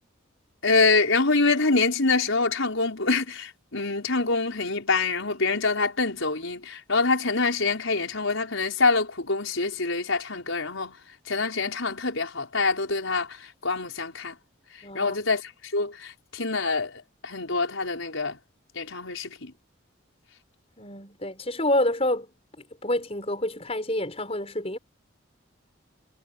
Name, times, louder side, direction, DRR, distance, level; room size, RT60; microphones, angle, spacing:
voice 1, 0.6-11.0 11.3-14.4 14.7-18.4 18.7-19.5, left 3 dB, 70° left, 5.1 m, -25 dB
voice 2, 14.8-15.2 20.8-22.3 22.8-24.8, left 1 dB, 30° left, 6.0 m, -27 dB
head